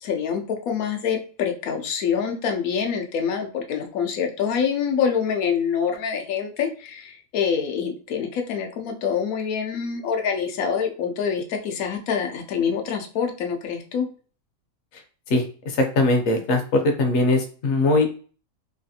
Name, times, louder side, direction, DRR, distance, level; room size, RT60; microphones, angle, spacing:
voice 1, 0.0-14.1, left 7 dB, 85° left, 4 dB, 1.1 m, -26 dB
voice 2, 15.3-18.2, left 2 dB, 60° left, 4 dB, 0.9 m, -21 dB
3.2 x 2.4 x 2.7 m, 0.40 s
omnidirectional pair, 1.5 m